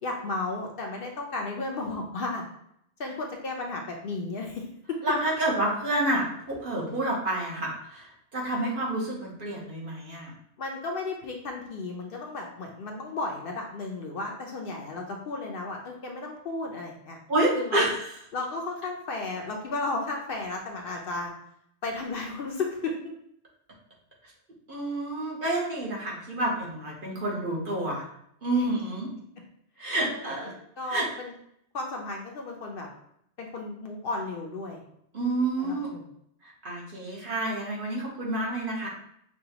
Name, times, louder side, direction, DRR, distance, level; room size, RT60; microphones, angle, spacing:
voice 1, 0.0-2.4 3.0-5.0 10.6-17.2 17.6-17.9 18.3-21.3 21.8-23.0 28.6-28.7 30.0-30.3 30.8-31.3 31.7-32.9 33.4-34.8 35.6-36.0, left 3 dB, 60° left, 1 dB, 0.8 m, -34 dB
voice 2, 5.0-10.3 17.3-18.0 24.7-28.1 28.4-29.1 29.8-30.5 30.9-31.0 35.1-35.9 36.4-38.9, right 1 dB, 50° right, -3 dB, 1.2 m, -29 dB
5.4 x 2.3 x 2.8 m, 0.71 s
omnidirectional pair, 1.1 m